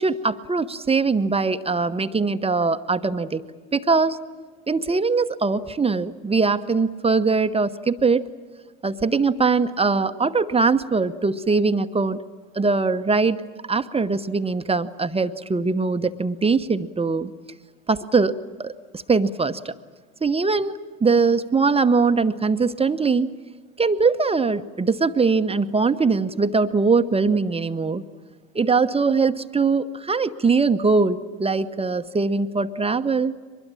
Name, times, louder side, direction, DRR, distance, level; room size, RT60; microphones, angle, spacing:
voice 1, 0.0-3.4 3.7-4.2 4.7-8.2 8.8-12.2 12.5-13.4 13.7-17.3 17.9-18.3 18.6-19.7 20.2-23.3 23.8-28.0 28.5-33.4, right 4 dB, 15° right, 10 dB, 0.9 m, -21 dB
23.5 x 21.0 x 8.8 m, 1.4 s
figure-of-eight pair, 70°, 42 cm